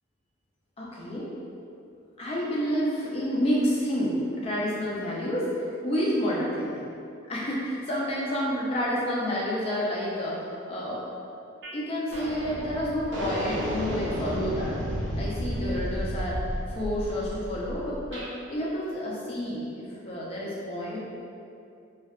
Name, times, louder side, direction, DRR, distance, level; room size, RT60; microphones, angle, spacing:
voice 1, 0.8-1.3 2.2-6.9 7.3-11.1 11.7-14.7 15.2-21.0, equal, 30° left, -5 dB, 0.4 m, -29 dB
sound 1, 11.6-11.8 12.1-18.3, equal, 55° right, 0.4 m, -32 dB
2.6 x 2.2 x 2.3 m, 2.6 s
head